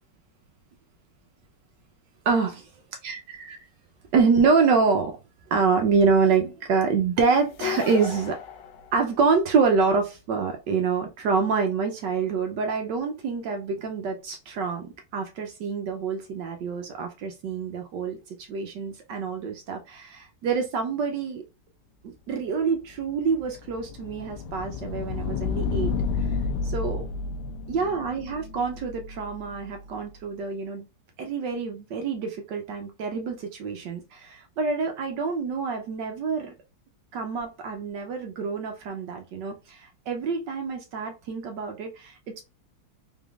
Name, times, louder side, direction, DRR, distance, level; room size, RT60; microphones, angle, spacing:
voice 1, 2.2-2.7 3.0-3.6 4.1-5.2 5.5-8.4 8.9-21.4 22.0-25.9 26.6-27.0 27.7-30.9 31.2-36.5 37.1-42.4, right 5 dB, 70° right, 1.2 m, -26 dB
sound 1, 7.5-9.5, left 9 dB, 70° left, 1.2 m, -34 dB
sound 2, 23.0-29.8, left 5 dB, 90° left, 1.4 m, -31 dB
4.0 x 3.5 x 2.4 m
omnidirectional pair, 2.3 m